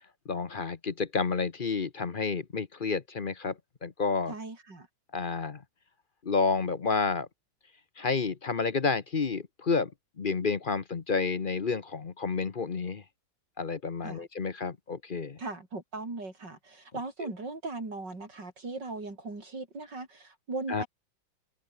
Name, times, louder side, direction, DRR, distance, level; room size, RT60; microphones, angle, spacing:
voice 1, 0.3-4.3 5.1-5.6 6.2-7.3 8.0-9.9 10.2-13.0 13.6-15.4 17.2-17.3 20.7-20.8, left 4 dB, 35° left, 0.9 m, -30 dB
voice 2, 4.3-4.9 14.0-14.2 15.4-20.9, right 3 dB, 65° right, 6.3 m, -38 dB
omnidirectional pair, 2.1 m